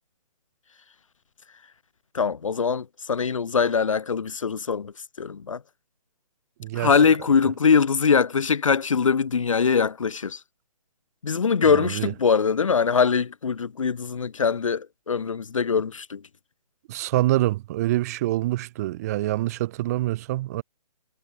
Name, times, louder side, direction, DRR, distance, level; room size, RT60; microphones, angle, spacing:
voice 1, 2.1-5.6 6.7-10.4 11.2-16.2, left 6 dB, 55° left, 3.4 m, -22 dB
voice 2, 6.6-6.9 11.7-12.1 16.9-20.6, right 16 dB, 25° right, 1.6 m, -25 dB
figure-of-eight pair, 140°, 20 cm